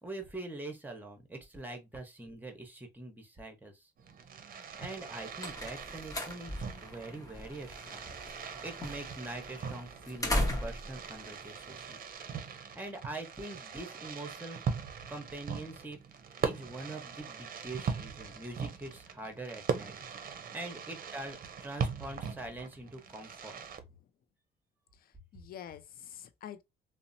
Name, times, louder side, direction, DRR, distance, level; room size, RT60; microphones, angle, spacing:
voice 1, 0.0-3.9 4.8-8.1 8.6-12.0 12.7-14.6 15.1-16.0 16.4-19.9 20.5-23.6, right 2 dB, 10° right, 0.9 m, -43 dB
Fireworks, 4.0-23.8, right 6 dB, 45° right, 0.6 m, -40 dB
sound 1, 4.9-12.4, left 1 dB, 20° left, 0.7 m, -38 dB
voice 2, 24.9-26.6, left 10 dB, 50° left, 0.4 m, -47 dB
2.7 x 2.0 x 2.6 m
cardioid pair, 90°, 20 cm